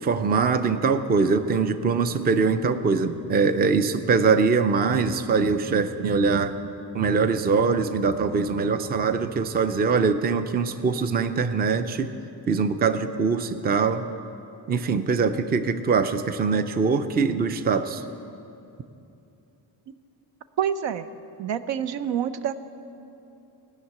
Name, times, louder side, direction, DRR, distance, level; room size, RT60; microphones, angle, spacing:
voice 1, 0.0-6.6 6.9-12.1 12.5-14.1 14.7-18.0, right 5 dB, 25° right, 11 dB, 0.4 m, -23 dB
voice 2, 20.6-21.1 21.4-22.5, right 9 dB, 90° right, 12 dB, 0.7 m, -27 dB
17.5 x 6.4 x 9.4 m, 2.8 s
wide cardioid pair, 170°, 42 cm